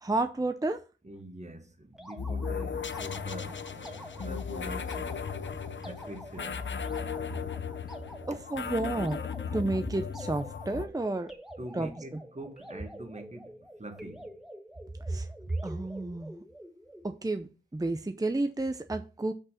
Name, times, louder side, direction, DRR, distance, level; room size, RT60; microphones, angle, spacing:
voice 1, 0.0-0.8 7.4-7.5 8.3-9.2 9.5-11.3 11.7-12.2 15.1-15.3 15.6-16.4 17.0-19.3, right 2 dB, 20° right, 0.6 m, -31 dB
voice 2, 1.0-5.2 5.8-6.6 8.3-8.4 11.6-14.3, right 1 dB, 35° right, 1.5 m, -44 dB
sound 1, 1.9-17.2, equal, ahead, 1.6 m, -48 dB
sound 2, 2.2-10.9, left 6 dB, 75° left, 0.7 m, -36 dB
6.0 x 5.4 x 5.7 m
wide cardioid pair, 65°, 19 cm